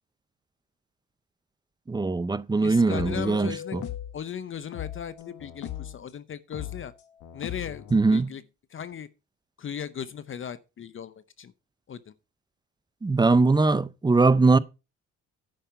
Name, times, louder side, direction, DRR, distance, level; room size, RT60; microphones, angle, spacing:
voice 1, 1.9-3.8 7.9-8.3 13.0-14.6, right 3 dB, 15° right, 0.5 m, -21 dB
voice 2, 2.6-3.8 4.1-6.9 7.3-8.4 8.7-9.1 9.6-11.5 11.9-12.1, left 8 dB, 45° left, 0.7 m, -37 dB
sound 1, 2.9-4.2 4.7-6.0 6.5-8.1, left 11 dB, 90° left, 1.6 m, -38 dB
10.0 x 5.5 x 5.6 m
cardioid pair, 90°, 30 cm